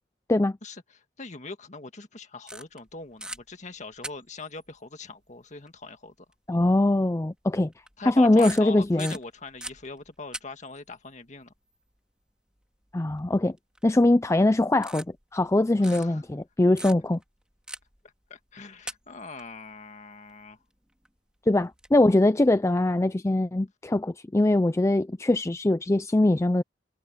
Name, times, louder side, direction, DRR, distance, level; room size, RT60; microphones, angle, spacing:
voice 1, 0.6-6.3 8.0-11.5 15.8-16.2 18.3-20.6, left 3 dB, 40° left, 1.8 m, -41 dB
sound 1, 2.5-2.9 3.2-3.4 4.0-4.5 5.7-5.8 6.3-6.4 7.7-8.0 8.4-10.4 10.7-10.8 13.7-14.0 14.8-15.5 15.8-16.0 16.8-17.2 17.7-18.0 18.7-19.4 21.0-21.1 21.6-21.9, right 1 dB, 5° right, 2.1 m, -39 dB
voice 2, 6.5-7.7 8.1-9.1 12.9-13.6 13.8-15.0 15.3-17.2 21.5-26.6, left 2 dB, 15° left, 0.4 m, -22 dB
head